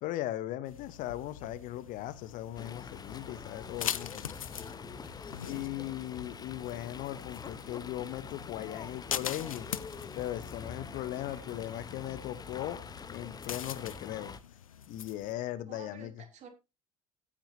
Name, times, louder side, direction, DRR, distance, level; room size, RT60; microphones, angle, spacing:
voice 1, 0.0-4.3 5.5-9.7 10.1-12.8 13.1-14.3 14.9-16.1, left 14 dB, 50° left, 0.9 m, -38 dB
sound 1, 0.6-15.3, left 9 dB, 75° left, 0.5 m, -43 dB
Fowl, 2.5-14.4, left 5 dB, 20° left, 1.0 m, -45 dB
voice 2, 5.4-5.7 11.1-11.9 15.7-16.5, right 7 dB, 40° right, 2.8 m, -53 dB
15.0 x 8.8 x 2.8 m
figure-of-eight pair, 65°, 18 cm